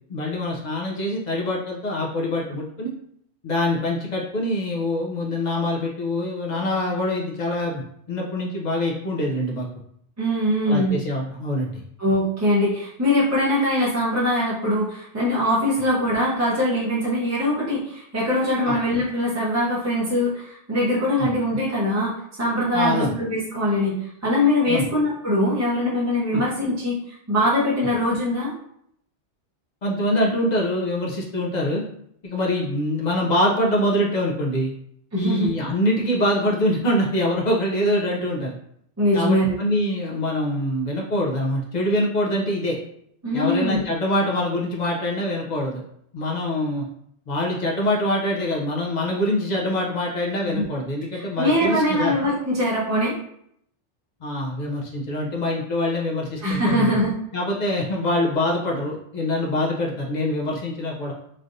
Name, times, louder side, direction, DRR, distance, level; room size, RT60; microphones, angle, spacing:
voice 1, 0.1-2.9 3.4-7.8 8.1-9.7 10.7-11.8 18.6-18.8 21.2-21.3 22.7-23.1 24.7-24.9 26.3-26.4 29.8-31.8 32.2-34.7 35.2-38.5 39.1-42.8 43.3-45.8 46.1-46.8 47.3-52.1 54.2-57.0 57.3-61.1, left 1 dB, 55° left, -1 dB, 0.5 m, -24 dB
voice 2, 10.2-11.0 12.0-28.5 35.1-35.5 39.0-39.5 43.2-43.8 50.5-50.7 51.1-53.1 56.4-57.1, left 1 dB, 15° right, -8 dB, 0.6 m, -22 dB
3.2 x 2.5 x 2.6 m, 0.70 s
omnidirectional pair, 1.2 m